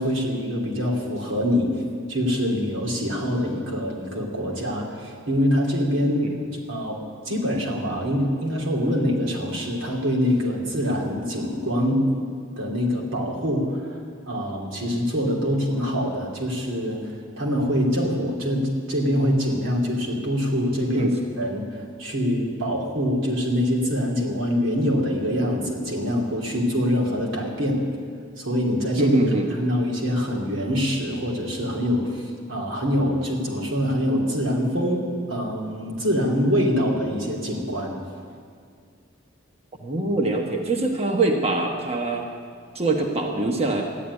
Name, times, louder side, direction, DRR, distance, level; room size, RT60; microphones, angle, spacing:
voice 1, 0.0-1.8 2.1-6.3 6.7-7.0 7.2-12.1 12.6-14.0 14.3-21.1 21.4-27.8 28.4-29.2 29.6-38.0, equal, 90° right, -2 dB, 3.2 m, -24 dB
voice 2, 29.0-29.5 39.8-42.2 42.7-43.8, right 2 dB, 30° right, 2 dB, 1.2 m, -23 dB
14.0 x 10.0 x 9.8 m, 2.2 s
head